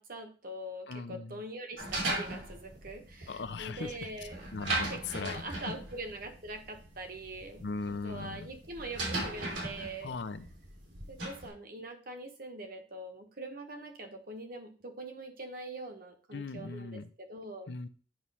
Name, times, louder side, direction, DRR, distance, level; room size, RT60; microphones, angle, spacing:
voice 1, 0.0-4.5 4.9-10.1 11.1-17.7, right 1 dB, 55° right, 5 dB, 1.2 m, -43 dB
voice 2, 0.9-1.4 3.3-4.1 4.5-5.7 7.6-8.5 10.0-10.5 16.3-17.1 17.7-17.9, left 4 dB, 70° left, 13 dB, 0.6 m, -39 dB
sound 1, 1.8-11.5, right 2 dB, 90° right, 3.1 m, -38 dB
8.8 x 3.1 x 5.5 m, 0.38 s
head